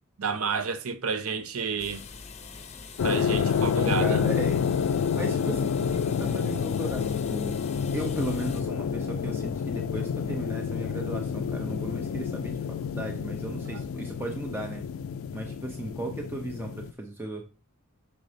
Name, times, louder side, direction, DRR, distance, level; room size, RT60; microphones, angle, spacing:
voice 1, 0.2-2.1 3.0-4.2, right 5 dB, 75° right, 0.7 m, -30 dB
sound 1, 1.8-8.6, left 5 dB, 30° left, 0.8 m, -44 dB
sound 2, 3.0-16.9, left 7 dB, 65° left, 0.3 m, -29 dB
voice 2, 3.8-4.7 5.1-7.6 7.9-14.9 15.3-17.5, right 1 dB, 10° right, 0.6 m, -36 dB
6.1 x 4.0 x 4.9 m
head